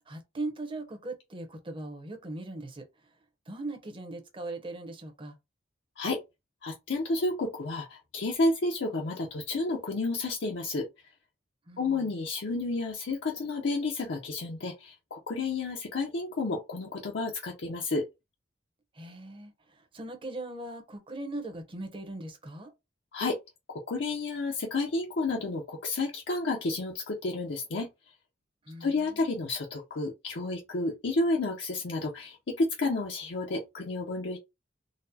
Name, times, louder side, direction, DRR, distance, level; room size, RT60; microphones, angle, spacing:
voice 1, 0.1-2.9 3.5-5.4 11.7-12.0 18.9-22.7 28.6-29.3, right 2 dB, 30° right, 0.7 m, -39 dB
voice 2, 6.6-10.8 11.8-18.0 23.1-23.4 23.7-27.9 28.8-34.4, left 2 dB, 70° left, 0.6 m, -31 dB
4.0 x 2.0 x 2.7 m
head